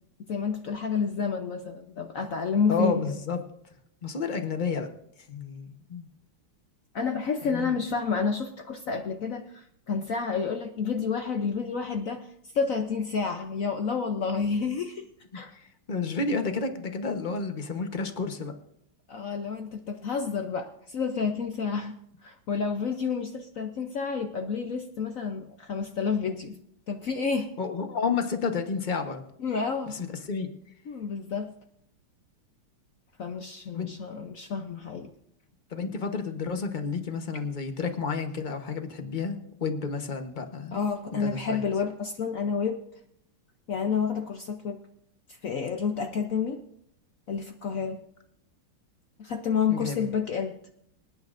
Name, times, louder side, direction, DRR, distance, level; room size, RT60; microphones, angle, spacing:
voice 1, 0.3-3.2 6.9-12.3 12.5-15.1 15.3-15.5 19.1-22.0 22.2-26.6 26.9-27.5 29.4-30.0 30.9-31.5 33.2-35.1 40.7-42.8 43.7-44.8 45.4-46.6 47.3-48.0 49.2-50.6, left 5 dB, 70° left, 6 dB, 0.8 m, -29 dB
voice 2, 2.7-3.4 4.0-4.9 5.3-6.1 7.4-7.8 15.5-18.5 27.6-29.2 29.9-30.5 33.7-33.9 35.7-40.8 41.1-41.6 49.7-50.1, left 4 dB, 35° left, 6 dB, 0.8 m, -31 dB
26.5 x 9.5 x 2.6 m, 0.74 s
omnidirectional pair, 2.4 m